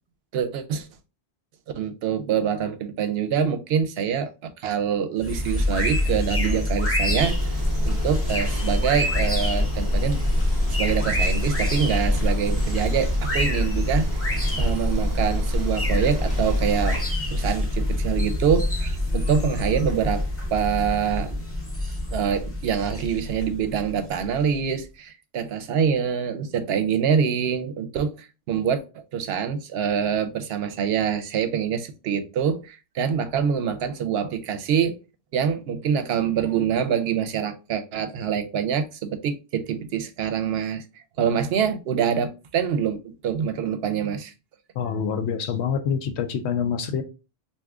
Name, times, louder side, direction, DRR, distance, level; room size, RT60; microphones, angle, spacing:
voice 1, 0.3-0.9 1.7-7.4 7.8-10.2 10.8-14.2 14.6-17.0 17.3-20.2 20.5-21.4 22.1-35.0 35.3-40.8 41.2-44.3, right 7 dB, 70° right, 0.8 m, -25 dB
sound 1, 5.2-24.6, left 1 dB, 15° left, 0.5 m, -26 dB
sound 2, 7.2-17.0, equal, 35° right, 0.3 m, -29 dB
voice 2, 44.8-47.0, left 7 dB, 85° left, 0.9 m, -26 dB
2.7 x 2.3 x 3.4 m
omnidirectional pair, 1.1 m